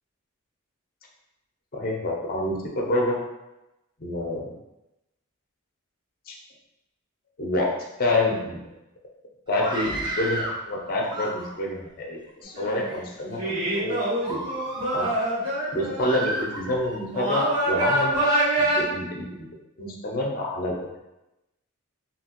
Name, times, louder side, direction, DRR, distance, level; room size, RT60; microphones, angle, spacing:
voice 1, 1.7-3.2 4.0-4.5 6.3-6.4 7.4-7.7 8.0-8.6 9.5-14.0 14.3-14.4 14.9-15.1 15.7-18.1 18.6-19.5 19.8-21.0, left 1 dB, 40° left, -1 dB, 0.6 m, -27 dB
Screaming, 9.5-10.6 11.0-11.7 12.4-13.0 13.5-13.7 14.2-15.2 16.0-17.0, right 1 dB, 20° right, 0.4 m, -33 dB
sound 1, 12.4-12.9 13.4-16.2 17.1-18.8, right 1 dB, 80° right, 1.5 m, -25 dB
2.9 x 2.8 x 2.8 m, 0.95 s
head